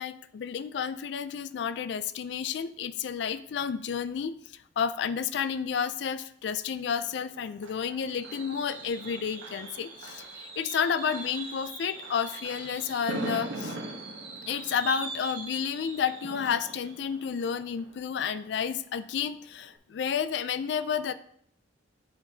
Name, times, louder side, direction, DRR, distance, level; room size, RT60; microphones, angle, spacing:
voice 1, 0.0-4.4 4.8-13.8 14.5-21.1, left 7 dB, 65° left, 14 dB, 0.3 m, -31 dB
Fireworks, 7.0-18.7 19.0-19.3 19.6-19.7, right 2 dB, 80° right, 1.1 m, -40 dB
9.9 x 3.6 x 2.7 m, 0.67 s
head